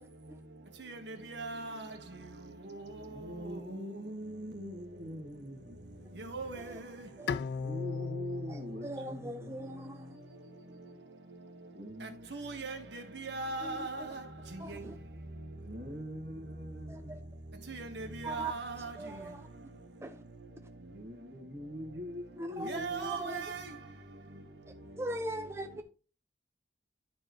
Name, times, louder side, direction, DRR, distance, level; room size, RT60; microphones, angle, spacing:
voice 1, 0.8-1.9 2.6-3.6 6.2-6.9 12.0-14.2 14.5-14.8 17.7-19.0 22.6-23.7, right 3 dB, 85° right, 1.4 m, -40 dB
voice 2, 3.1-5.9 7.6-10.2 11.7-12.3 15.6-17.3 20.8-23.1, equal, 70° right, 1.6 m, -43 dB
Bowed string instrument, 7.3-10.5, left 5 dB, 75° left, 0.3 m, -39 dB
voice 3, 8.5-10.2 13.6-14.1 14.6-15.0 16.9-17.2 18.2-18.5 18.8-19.5 20.0-20.2 22.4-23.5 25.0-25.8, right 2 dB, 15° right, 0.5 m, -41 dB
11.0 x 4.6 x 3.0 m
head